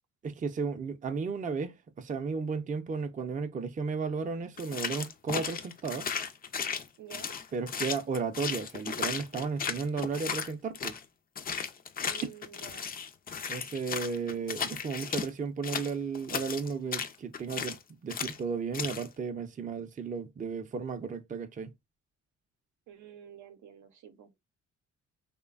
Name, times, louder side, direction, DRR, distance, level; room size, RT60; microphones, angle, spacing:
voice 1, 0.2-6.1 7.5-10.9 13.5-17.8 18.0-21.7, right 5 dB, 25° right, 0.5 m, -34 dB
sound 1, 4.6-11.0 11.4-15.3 15.6-17.8 18.1-18.4 18.7-19.1, left 6 dB, 30° left, 0.4 m, -35 dB
voice 2, 7.0-7.3 12.0-12.9 22.9-24.3, right 10 dB, 75° right, 0.7 m, -50 dB
3.1 x 2.2 x 2.3 m
cardioid pair, 90°, 30 cm